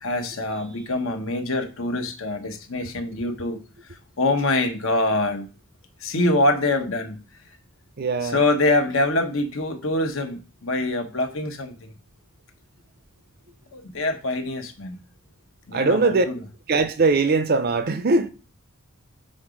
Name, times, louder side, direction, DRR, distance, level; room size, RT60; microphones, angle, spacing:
voice 1, 0.0-5.5 6.0-7.2 8.2-11.9 13.7-15.0 15.7-16.4, left 2 dB, 65° left, 1.0 m, -25 dB
voice 2, 8.0-8.4 15.7-16.3 16.7-18.3, right 3 dB, 45° right, 0.5 m, -20 dB
6.4 x 3.8 x 5.0 m
head